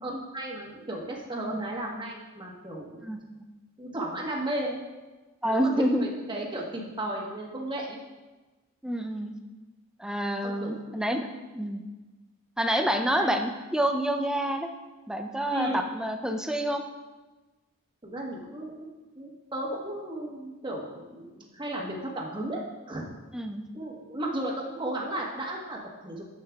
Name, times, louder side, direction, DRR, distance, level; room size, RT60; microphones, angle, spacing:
voice 1, 0.0-3.0 3.8-4.8 5.5-5.7 6.0-8.0 10.4-10.9 13.2-13.3 15.5-15.9 18.0-18.9 19.1-23.1 23.7-26.2, right 1 dB, 20° right, -2 dB, 1.1 m, -34 dB
voice 2, 3.0-3.4 5.4-6.1 8.8-9.4 10.0-11.3 11.5-11.9 12.6-14.7 15.1-16.8 23.3-23.6, right 1 dB, 5° right, 5 dB, 0.4 m, -28 dB
9.7 x 7.4 x 2.3 m, 1.2 s
head